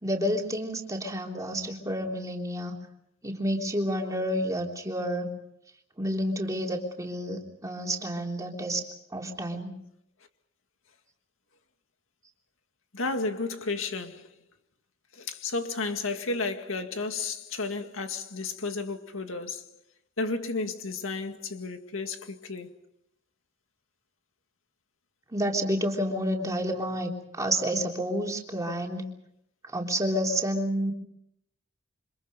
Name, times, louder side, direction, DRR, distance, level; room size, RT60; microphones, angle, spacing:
voice 1, 0.0-2.7 3.2-5.3 6.0-8.8 9.1-9.7 25.3-29.0 29.7-30.9, equal, 15° right, 3.4 m, -29 dB
voice 2, 12.9-14.3 15.1-19.7 20.2-22.8, left 3 dB, 85° left, 2.1 m, -32 dB
28.0 x 25.5 x 5.3 m
head